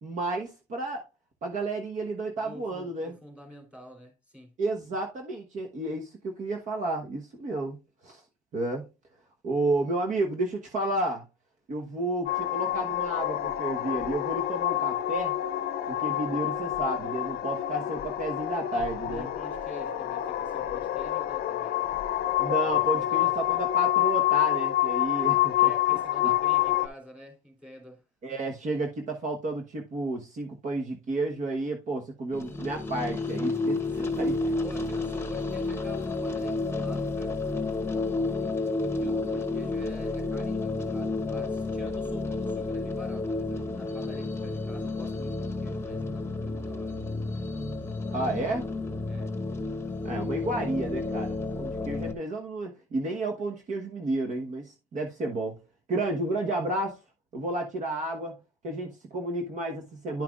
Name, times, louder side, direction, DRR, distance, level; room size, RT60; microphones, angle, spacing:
voice 1, 0.0-1.0 1.4-3.1 4.6-7.8 8.0-8.2 8.5-8.9 9.4-11.2 11.7-15.3 15.9-19.3 22.4-25.5 28.2-34.4 48.1-48.7 50.0-55.6 55.9-57.0 57.3-58.4 58.6-60.2, right 2 dB, 45° right, 1.2 m, -31 dB
voice 2, 2.4-4.5 16.0-16.6 19.1-21.8 22.6-23.4 25.6-28.0 34.0-34.2 34.6-38.4 38.8-47.0 49.0-49.3, equal, 5° right, 3.2 m, -48 dB
sound 1, 12.3-26.9, left 13 dB, 65° left, 0.6 m, -27 dB
sound 2, 32.3-52.1, left 3 dB, 15° left, 1.0 m, -31 dB
10.5 x 5.8 x 2.4 m
cardioid pair, 110°, 17 cm